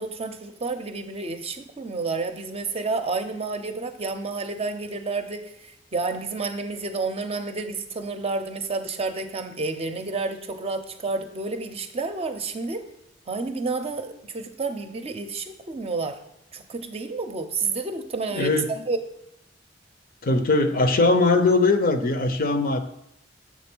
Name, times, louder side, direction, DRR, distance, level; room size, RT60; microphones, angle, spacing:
voice 1, 0.0-12.8 13.3-16.2 16.5-19.0, right 3 dB, 35° right, 7 dB, 0.6 m, -30 dB
voice 2, 18.3-18.7 20.2-22.8, left 3 dB, 50° left, 8 dB, 0.6 m, -20 dB
7.3 x 3.7 x 6.1 m, 0.81 s
head